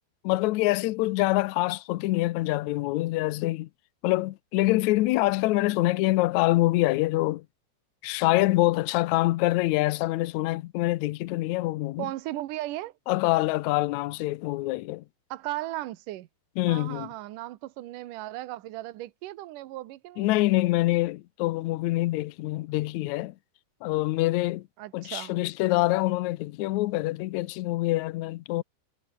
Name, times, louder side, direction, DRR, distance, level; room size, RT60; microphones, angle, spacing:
voice 1, 0.2-3.7 4.0-7.5 8.0-12.1 13.1-15.0 16.6-17.1 20.2-23.3 23.8-24.7 24.9-28.6, left 18 dB, 75° left, 1.9 m, -25 dB
voice 2, 12.0-12.9 15.3-16.3 16.7-20.3 24.8-25.4, right 16 dB, 80° right, 2.6 m, -36 dB
omnidirectional pair, 3.8 m